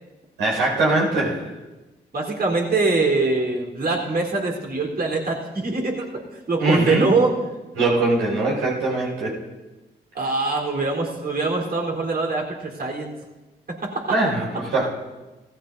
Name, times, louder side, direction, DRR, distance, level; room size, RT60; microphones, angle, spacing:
voice 1, 0.4-1.5 6.6-7.0 7.8-9.4 14.1-15.0, right 2 dB, 90° right, -3 dB, 5.3 m, -22 dB
voice 2, 2.1-6.2 6.5-7.3 10.1-13.1 13.8-14.1, right 3 dB, 50° right, 0 dB, 3.9 m, -23 dB
17.5 x 14.5 x 2.7 m, 1.1 s
supercardioid pair, 45°, 19 cm